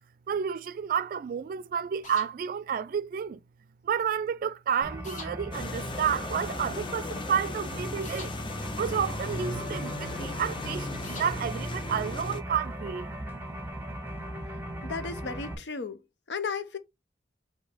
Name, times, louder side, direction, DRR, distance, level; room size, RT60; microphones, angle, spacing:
voice 1, 0.3-3.4 3.8-8.3 8.8-13.1, right 7 dB, 55° right, 0.3 m, -30 dB
sound 1, 2.0-2.3 5.0-5.3 8.0-8.3 11.0-11.3, left 2 dB, 50° left, 1.6 m, -42 dB
sound 2, 4.8-15.5, equal, 10° right, 0.8 m, -38 dB
sound 3, 5.5-12.4, left 2 dB, 30° left, 0.4 m, -37 dB
voice 2, 14.8-16.0 16.3-16.8, left 5 dB, 80° left, 0.6 m, -34 dB
5.0 x 2.7 x 3.5 m
head